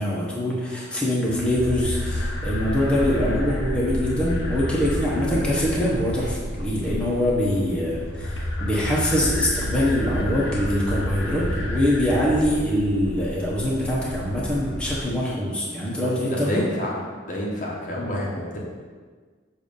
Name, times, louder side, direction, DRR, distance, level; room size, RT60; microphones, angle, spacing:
voice 1, 0.0-16.6 18.0-18.2, left 1 dB, 5° left, -6 dB, 1.0 m, -24 dB
sound 1, 1.3-15.0, left 1 dB, 70° left, 0.8 m, -30 dB
voice 2, 16.0-17.0 17.3-18.6, left 1 dB, 40° left, -3 dB, 0.9 m, -29 dB
6.9 x 2.7 x 5.2 m, 1.5 s
head